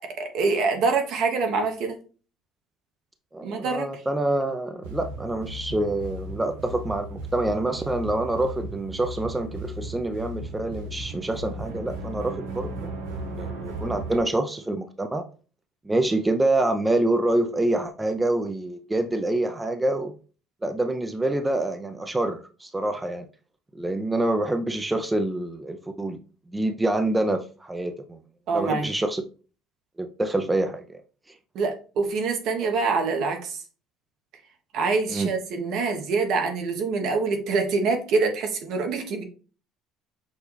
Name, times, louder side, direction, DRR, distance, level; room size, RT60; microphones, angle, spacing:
voice 1, 0.2-2.0 3.4-3.8 28.5-28.9 31.5-33.6 34.7-39.2, right 4 dB, 65° right, 1.0 m, -25 dB
voice 2, 3.3-15.2 15.8-20.1 20.6-23.3 23.7-26.2 26.5-28.2 28.5-29.2 30.0-31.0 31.3-31.4 35.1-35.3, right 2 dB, 15° right, 0.4 m, -26 dB
sound 1, 4.8-14.2, right 1 dB, 90° right, 0.8 m, -36 dB
6.0 x 2.3 x 3.2 m
supercardioid pair, 85°, 0 cm